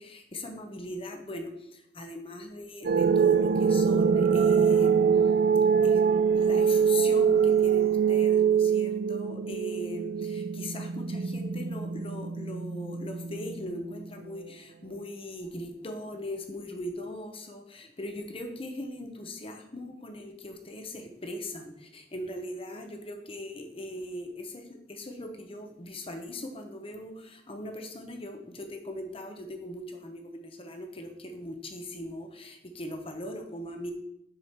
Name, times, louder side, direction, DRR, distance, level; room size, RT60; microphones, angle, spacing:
voice 1, 0.0-5.0 5.8-6.0 6.3-33.9, left 1 dB, 30° left, 5 dB, 1.0 m, -40 dB
sound 1, 2.8-13.9, right 6 dB, 55° right, 0.4 m, -24 dB
6.7 x 4.8 x 5.9 m, 0.79 s
head